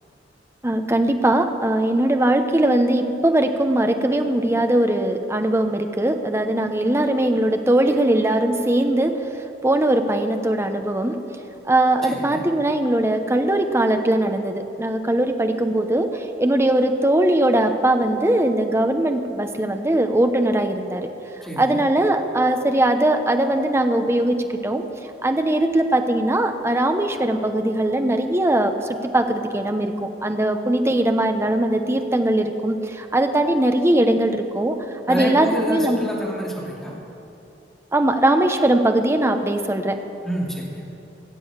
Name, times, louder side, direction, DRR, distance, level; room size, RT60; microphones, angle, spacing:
voice 1, 0.6-9.1 9.6-11.2 11.7-21.1 21.6-24.8 25.2-34.8 35.1-36.0 37.9-40.0, right 1 dB, 15° right, 6 dB, 0.8 m, -20 dB
voice 2, 12.0-12.4 21.4-21.8 35.1-37.0 40.2-40.7, equal, ahead, -4 dB, 2.6 m, -28 dB
15.5 x 7.8 x 8.6 m, 2.8 s
head